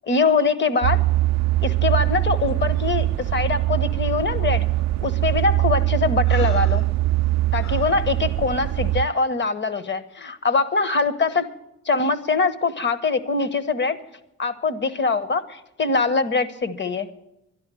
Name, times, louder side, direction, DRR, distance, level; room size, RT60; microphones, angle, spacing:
voice 1, 0.0-1.0 1.6-4.7 5.0-6.9 7.5-11.5 11.8-14.0 14.4-17.1, left 4 dB, 40° left, 14 dB, 1.2 m, -23 dB
sound 1, 0.8-9.0, right 16 dB, 60° right, 0.4 m, -22 dB
Breathing, 6.2-8.0, left 2 dB, 60° left, 4.1 m, -37 dB
12.0 x 11.5 x 7.7 m, 0.85 s
cardioid pair, 90°, 30 cm